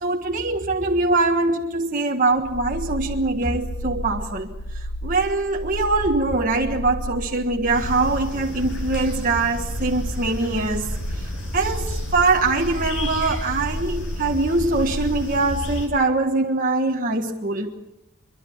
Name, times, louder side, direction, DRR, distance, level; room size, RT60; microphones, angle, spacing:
voice 1, 0.0-10.9 11.1-11.3 11.5-17.7, right 3 dB, 40° right, 1 dB, 1.5 m, -23 dB
sound 1, 2.3-15.7, equal, 85° left, 4.8 m, -32 dB
sound 2, 7.7-15.9, left 1 dB, 60° left, 6.5 m, -33 dB
24.5 x 23.5 x 7.2 m, 0.88 s
head